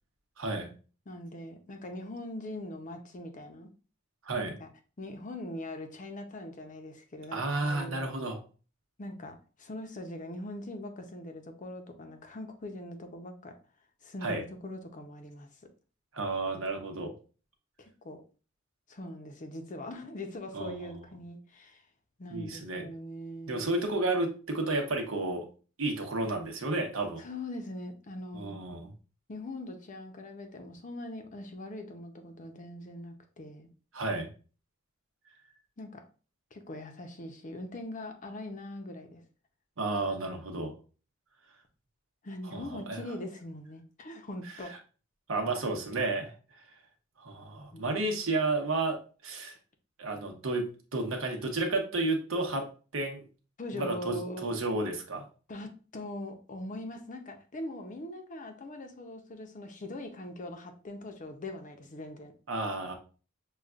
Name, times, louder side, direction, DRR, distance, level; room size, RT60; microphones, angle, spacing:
voice 1, 0.4-0.7 4.2-4.6 7.3-8.4 14.2-14.4 16.1-17.1 20.5-20.9 22.3-22.9 23.5-25.4 25.8-27.2 28.3-28.9 33.9-34.3 39.8-40.7 42.5-43.0 45.3-46.3 47.2-49.6 50.0-52.7 52.9-53.3 53.7-55.2 62.5-62.9, right 2 dB, 80° right, 0.9 m, -32 dB
voice 2, 1.1-3.7 4.6-4.7 5.0-8.0 9.0-13.6 14.0-15.5 17.8-18.2 18.9-21.8 22.2-23.8 27.2-28.6 29.3-33.7 35.8-36.1 36.5-39.2 42.2-44.8 47.7-48.1 53.6-54.5 55.5-62.3, left 1 dB, 40° left, 0.6 m, -42 dB
6.5 x 2.3 x 2.4 m
head